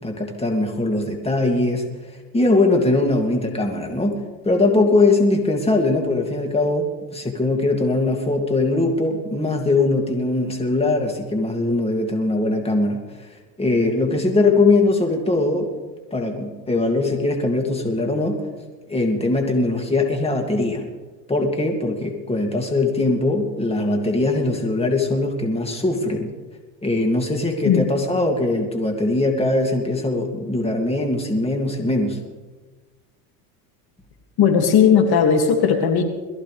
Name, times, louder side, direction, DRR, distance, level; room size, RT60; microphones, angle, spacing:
voice 1, 0.0-4.2 4.4-13.3 13.6-15.7 16.1-18.4 18.9-20.9 21.3-26.3 26.8-32.2, left 2 dB, 10° left, 2 dB, 2.4 m, -21 dB
voice 2, 34.4-36.0, left 7 dB, 50° left, 3 dB, 2.3 m, -16 dB
22.0 x 14.5 x 3.4 m, 1.2 s
hypercardioid pair, 85°, 49 cm